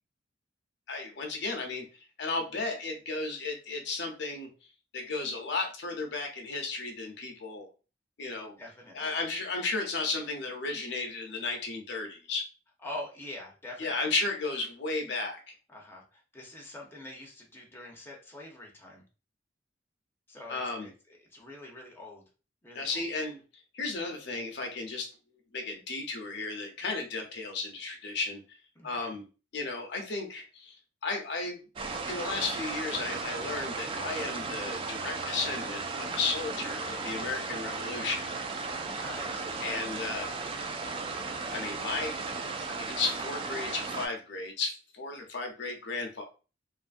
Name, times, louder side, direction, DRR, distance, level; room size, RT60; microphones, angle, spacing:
voice 1, 0.9-1.8 2.2-4.5 4.9-7.7 8.2-8.5 8.9-12.5 13.8-15.4 20.5-20.9 22.7-23.4 23.7-25.1 25.5-28.4 28.8-29.2 29.5-30.8 31.0-31.6 32.1-38.2 39.6-40.3 41.5-42.2 42.8-46.2, left 3 dB, 65° left, 2 dB, 0.6 m, -34 dB
voice 2, 8.6-9.2 12.8-14.1 15.7-19.0 20.3-22.2 22.6-23.1 28.7-29.2 38.7-39.9, left 1 dB, 10° left, -1 dB, 0.6 m, -45 dB
sound 1, 31.8-44.1, right 4 dB, 30° right, 0.3 m, -35 dB
2.6 x 2.5 x 2.4 m, 0.33 s
head